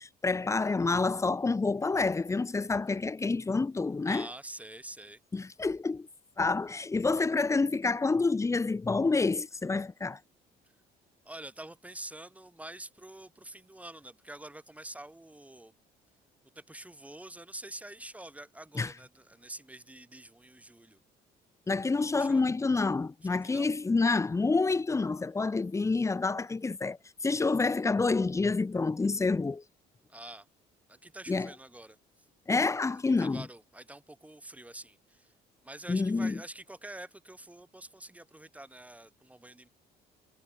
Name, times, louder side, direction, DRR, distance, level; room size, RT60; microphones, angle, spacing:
voice 1, 0.0-4.3 5.3-6.1 6.4-10.2 18.8-18.9 21.7-29.6 31.3-31.5 32.5-33.4 35.9-36.4, left 3 dB, 15° left, 1.0 m, -28 dB
voice 2, 4.1-5.2 11.2-15.7 16.5-21.0 22.1-22.4 23.3-23.7 30.1-30.5 30.9-32.0 33.2-35.3 35.6-39.7, right 1 dB, 10° right, 3.2 m, -46 dB
cardioid pair, 110°, 17 cm